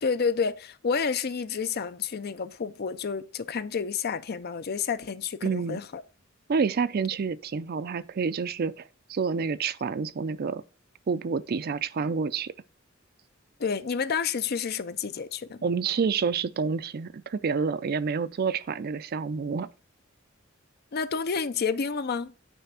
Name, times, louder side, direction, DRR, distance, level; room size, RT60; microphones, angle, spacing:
voice 1, 0.0-6.0 13.6-15.6 20.9-22.3, left 6 dB, 50° left, 0.5 m, -29 dB
voice 2, 5.4-5.8 6.5-8.7 9.1-10.6 11.1-12.5 15.6-19.7, right 5 dB, 50° right, 0.4 m, -28 dB
9.2 x 3.4 x 5.6 m
head